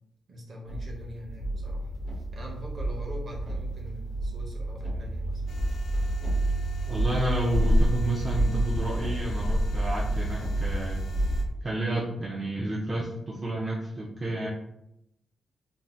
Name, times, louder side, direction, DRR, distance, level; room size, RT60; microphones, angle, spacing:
voice 1, 0.3-1.9 2.3-5.4, equal, 50° right, -1 dB, 0.7 m, -43 dB
sound 1, 0.7-11.5, right 1 dB, 70° right, 1.0 m, -28 dB
sound 2, 5.5-11.4, left 4 dB, 60° left, 0.3 m, -50 dB
voice 2, 6.9-11.2 11.6-14.5, right 1 dB, 25° right, -4 dB, 0.4 m, -31 dB
2.6 x 2.1 x 3.3 m, 0.81 s
wide cardioid pair, 170°, 0 cm